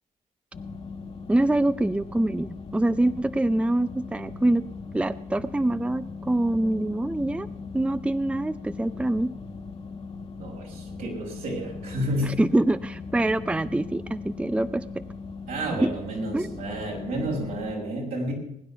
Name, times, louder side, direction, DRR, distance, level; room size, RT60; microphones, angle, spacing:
sound 1, 0.5-17.7, left 4 dB, 45° left, 1.6 m, -39 dB
voice 1, 1.3-4.6 4.9-7.5 7.7-9.3 12.2-15.0 15.8-15.9 16.3-16.6, right 1 dB, 10° right, 14 dB, 0.5 m, -25 dB
voice 2, 10.4-12.4 15.5-18.3, right 1 dB, 80° right, -1 dB, 5.8 m, -31 dB
20.5 x 10.0 x 5.7 m, 0.78 s
cardioid pair, 90°, 15 cm